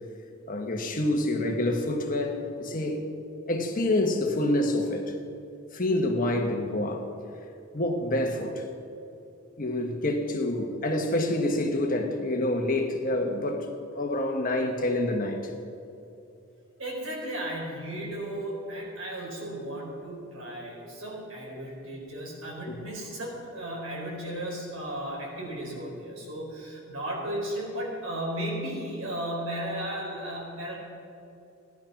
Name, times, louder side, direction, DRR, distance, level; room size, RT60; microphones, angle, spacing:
voice 1, 0.5-3.0 3.5-5.1 5.7-7.1 7.7-8.6 9.6-15.5 22.7-22.8, left 1 dB, 40° left, 3 dB, 1.4 m, -27 dB
voice 2, 16.8-30.8, right 1 dB, 75° right, -2 dB, 4.4 m, -35 dB
16.0 x 10.5 x 6.0 m, 2.7 s
head